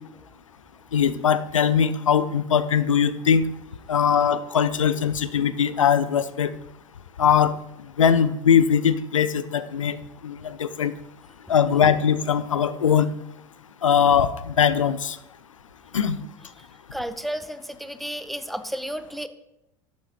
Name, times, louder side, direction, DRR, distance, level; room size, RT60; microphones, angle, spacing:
voice 1, 0.9-3.5 3.9-6.5 7.2-7.5 8.0-10.0 10.2-10.9 11.5-13.1 13.8-15.2 15.9-16.2, left 7 dB, 80° left, 15 dB, 0.5 m, -21 dB
voice 2, 16.4-19.3, equal, ahead, 11 dB, 0.5 m, -33 dB
11.5 x 7.2 x 3.1 m, 0.85 s
figure-of-eight pair, 75°, 16 cm